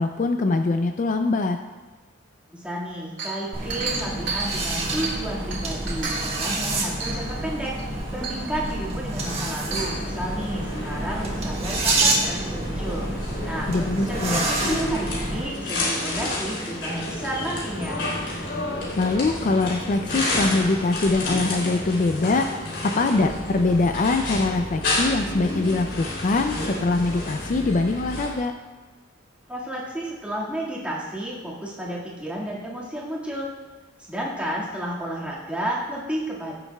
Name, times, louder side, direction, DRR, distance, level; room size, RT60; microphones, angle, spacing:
voice 1, 0.0-1.6 13.7-14.5 18.9-22.5 22.8-28.5, left 3 dB, 40° left, 6 dB, 0.4 m, -23 dB
voice 2, 2.5-7.7 8.1-13.1 13.4-18.1 29.5-33.5 34.1-36.5, right 1 dB, 5° right, -6 dB, 1.9 m, -32 dB
Chink clink, 3.2-5.3 5.5-6.5 7.0-7.4 7.8-7.9 8.2-8.7 9.5-10.0, right 4 dB, 65° right, 2.1 m, -32 dB
sound 1, 3.5-15.5, right 2 dB, 30° right, 1.6 m, -28 dB
sound 2, 9.6-28.3, left 1 dB, 65° left, 3.2 m, -30 dB
16.5 x 7.1 x 2.3 m, 1.3 s
head